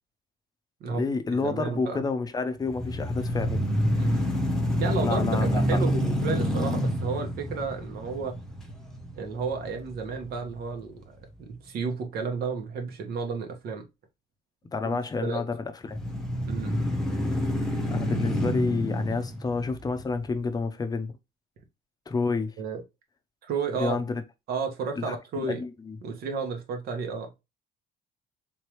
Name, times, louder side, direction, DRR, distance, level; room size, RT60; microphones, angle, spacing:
voice 1, 0.8-3.7 5.0-5.8 14.7-15.6 15.9-16.0 17.9-21.2 22.1-22.5 23.8-24.2 25.0-25.2 25.5-26.0, left 4 dB, 25° left, 0.6 m, -29 dB
voice 2, 1.4-2.0 4.0-4.3 4.8-8.4 9.2-13.8 14.8-15.4 16.5-16.8 22.6-22.8 23.4-24.0 24.5-25.6 26.0-27.3, right 5 dB, 65° right, 1.2 m, -32 dB
sound 1, 2.6-10.7 11.2-11.3 15.8-20.3, equal, 5° left, 0.9 m, -28 dB
3.6 x 3.3 x 3.0 m
cardioid pair, 110°, 17 cm